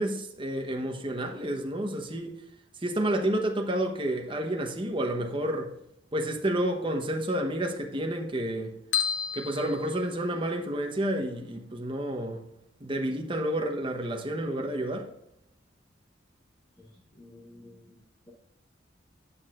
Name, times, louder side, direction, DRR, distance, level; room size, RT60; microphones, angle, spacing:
voice 1, 0.0-2.4 2.8-5.7 6.1-8.7 9.3-12.5 12.8-15.1, right 1 dB, 25° right, 1.0 m, -30 dB
sound 1, 8.9-10.7, left 8 dB, 70° left, 0.8 m, -32 dB
voice 2, 17.1-18.0, left 2 dB, 20° left, 1.2 m, -51 dB
9.6 x 6.2 x 2.5 m
head